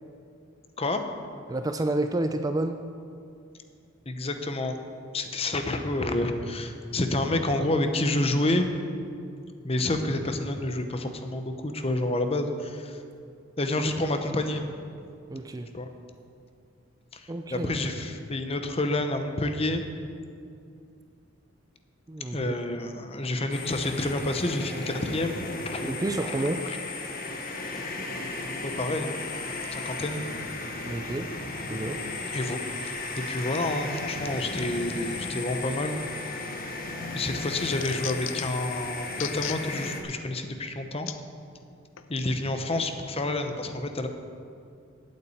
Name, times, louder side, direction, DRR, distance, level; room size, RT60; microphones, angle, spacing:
voice 1, 1.5-2.8 15.3-15.7 17.3-17.7 22.1-22.5 25.8-26.6 30.9-31.3 31.7-32.0, right 2 dB, 20° right, 7 dB, 0.4 m, -29 dB
voice 2, 4.1-4.8 5.1-8.7 9.6-13.0 13.6-14.6 15.7-15.9 17.1-19.8 22.3-25.3 25.6-25.9 26.3-26.4 26.6-26.8 28.6-29.2 29.7-30.2 32.3-35.9 37.1-41.1 42.1-44.1, left 2 dB, 30° left, 7 dB, 0.9 m, -29 dB
sound 1, 23.5-40.0, left 3 dB, 45° left, 1.2 m, -35 dB
sound 2, 36.5-36.9 37.3-38.6 39.1-39.6 40.1-40.2 41.1-41.2 42.0-42.1, left 12 dB, 75° left, 0.6 m, -36 dB
8.6 x 8.4 x 8.5 m, 2.4 s
head